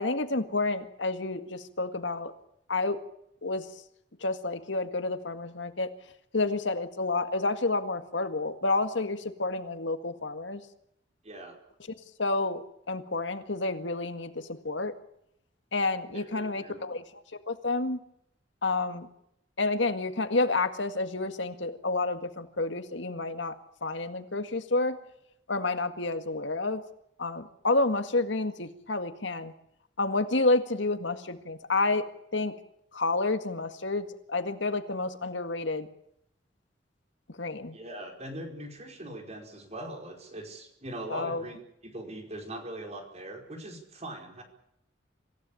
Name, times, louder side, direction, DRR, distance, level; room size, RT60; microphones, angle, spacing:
voice 1, 0.0-2.3 2.7-3.0 3.4-3.7 4.2-5.9 6.3-10.6 12.2-14.9 15.7-17.0 17.5-18.0 18.6-19.1 19.6-25.0 25.5-26.8 27.2-29.5 30.0-32.1 32.3-32.5 32.9-35.9 37.4-37.8 41.1-41.4, left 3 dB, 75° left, 9 dB, 1.9 m, -29 dB
voice 2, 11.2-11.6 16.1-16.8 37.7-44.4, right 1 dB, 35° right, 4 dB, 4.8 m, -41 dB
26.0 x 16.0 x 8.6 m, 0.76 s
head